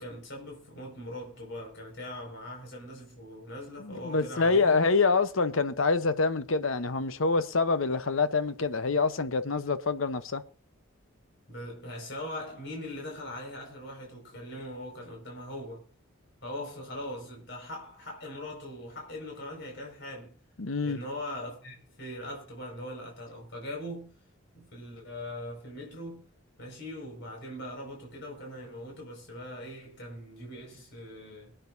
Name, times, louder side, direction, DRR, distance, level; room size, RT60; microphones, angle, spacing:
voice 1, 0.0-4.8 11.5-15.9 16.4-20.4 20.8-24.1 24.6-26.2 26.6-31.6, left 1 dB, 55° left, 5.2 m, -41 dB
voice 2, 3.8-10.4 20.6-21.0, left 4 dB, 75° left, 0.8 m, -26 dB
24.0 x 9.0 x 2.6 m
head